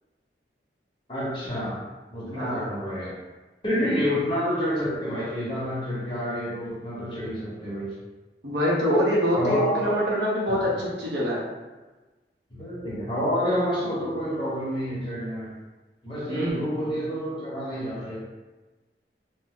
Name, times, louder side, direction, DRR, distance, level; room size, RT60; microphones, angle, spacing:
voice 1, 1.1-1.8 2.1-3.2 3.6-7.9 9.3-10.0 10.5-10.7 12.5-15.5 16.0-18.2, equal, 30° left, -8 dB, 1.0 m, -28 dB
voice 2, 2.3-2.6 3.8-4.0 8.4-11.4 16.3-16.6, equal, 85° right, -5 dB, 0.8 m, -25 dB
2.6 x 2.1 x 3.6 m, 1.2 s
head